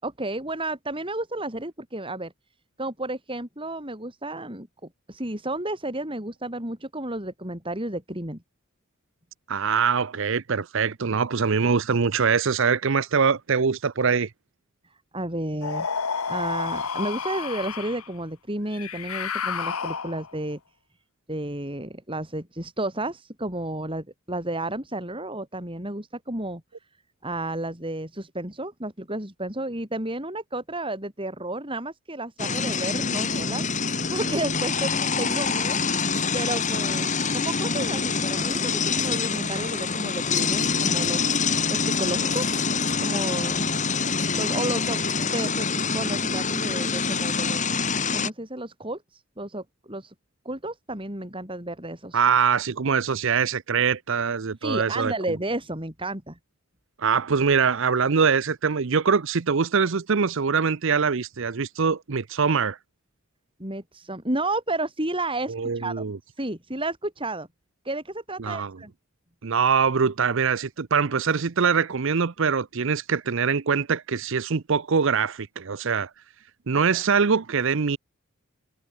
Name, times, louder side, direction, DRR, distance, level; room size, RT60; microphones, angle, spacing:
voice 1, 0.0-2.3 2.8-8.4 15.1-15.9 16.3-20.6 21.3-26.6 27.2-35.8 36.0-41.3 41.7-42.5 43.0-43.6 44.3-47.7 48.1-50.1 50.4-52.2 54.6-56.4 63.6-66.1 66.3-67.5 67.8-68.9 76.9-77.0, right 1 dB, 25° right, 6.8 m, -32 dB
voice 2, 9.5-14.3 52.1-55.1 57.0-62.8 65.5-66.2 68.4-68.7 69.4-76.1 76.7-78.0, right 6 dB, 60° right, 0.6 m, -23 dB
sound 1, 15.6-18.1 18.7-20.4, left 6 dB, 90° left, 1.5 m, -30 dB
sound 2, 32.4-48.3, left 5 dB, 35° left, 4.2 m, -25 dB
head